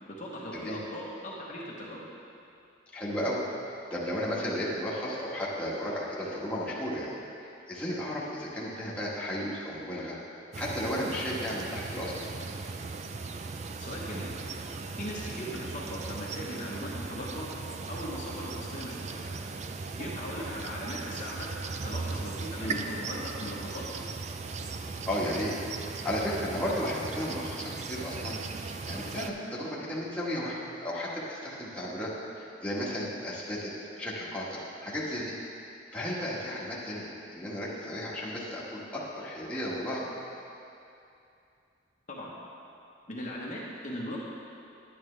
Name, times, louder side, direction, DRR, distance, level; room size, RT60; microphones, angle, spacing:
voice 1, 0.2-2.1 13.8-14.4 15.0-17.5 17.9-19.4 20.0-21.5 21.8-23.8 42.1-42.3 43.1-44.2, equal, 40° left, -5 dB, 1.1 m, -39 dB
voice 2, 2.9-3.4 3.9-7.1 7.4-10.2 10.5-12.3 22.6-22.8 25.1-25.6 25.8-28.4 28.8-33.7 34.0-35.3 35.9-40.1, equal, 5° left, -8 dB, 1.4 m, -34 dB
sound 1, 10.5-29.3, right 4 dB, 35° right, 0.4 m, -38 dB
10.5 x 9.3 x 3.3 m, 2.6 s
head